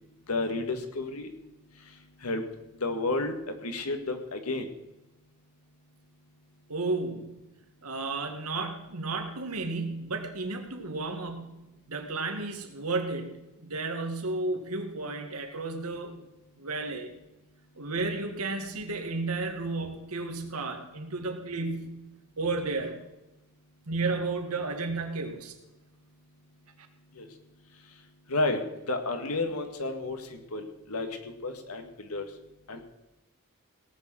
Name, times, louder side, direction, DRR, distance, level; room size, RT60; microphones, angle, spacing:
voice 1, 0.3-1.3 2.2-2.4 2.8-3.3 3.6-4.7 27.2-27.3 28.3-28.6 28.9-31.1 31.4-32.2 32.7-32.8, left 2 dB, 80° left, 6 dB, 1.9 m, -31 dB
voice 2, 6.7-7.4 7.8-11.6 11.9-16.2 16.6-17.1 17.8-22.0 22.4-23.0 23.9-25.5, right 3 dB, 80° right, 5 dB, 2.0 m, -33 dB
17.5 x 6.4 x 7.7 m, 0.99 s
head